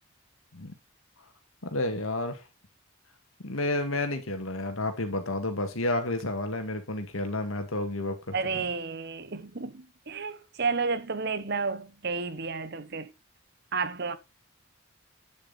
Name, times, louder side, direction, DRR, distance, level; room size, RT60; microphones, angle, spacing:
voice 1, 1.6-2.4 3.4-8.3, left 2 dB, 90° left, 2.0 m, -30 dB
voice 2, 8.3-13.1 13.7-14.2, right 4 dB, 50° right, 0.9 m, -31 dB
9.6 x 7.1 x 4.1 m
head